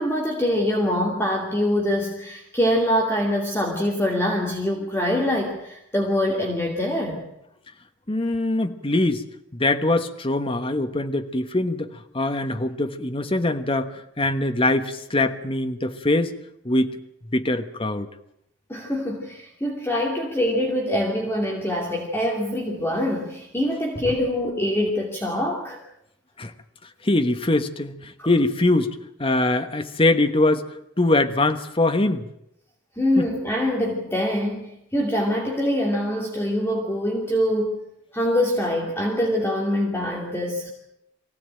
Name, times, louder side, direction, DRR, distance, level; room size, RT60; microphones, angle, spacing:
voice 1, 0.0-7.2 18.7-25.8 28.2-28.3 33.0-37.8 38.1-40.7, left 1 dB, 10° left, -1 dB, 2.6 m, -24 dB
voice 2, 8.1-9.2 9.5-16.3 16.6-17.0 17.3-18.1 26.4-26.5 27.0-30.7 31.0-32.3 33.2-33.3, left 2 dB, 30° left, 7 dB, 1.2 m, -23 dB
23.5 x 16.0 x 9.0 m, 0.80 s
head